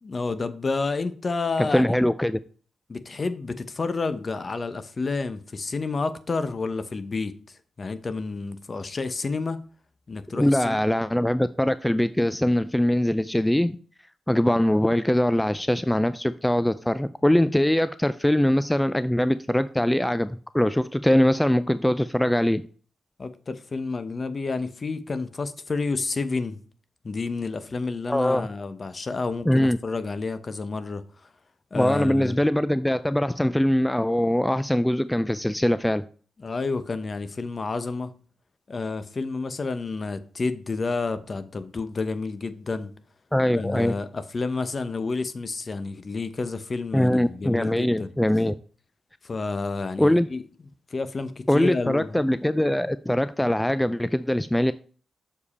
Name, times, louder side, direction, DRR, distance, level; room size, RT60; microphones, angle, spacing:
voice 1, 0.0-2.0 2.9-7.4 7.8-9.6 10.1-10.8 23.2-26.6 27.0-31.0 31.7-32.4 36.4-38.1 38.7-42.9 43.5-48.1 49.2-50.4 50.9-52.3, left 3 dB, 40° left, 0.7 m, -30 dB
voice 2, 1.7-2.4 10.3-13.8 14.3-22.6 28.1-28.5 29.5-29.8 31.7-36.0 43.3-44.0 46.9-48.5 50.0-50.3 51.5-54.7, left 1 dB, 5° left, 0.3 m, -22 dB
6.8 x 5.0 x 4.2 m
cardioid pair, 70°, 0 cm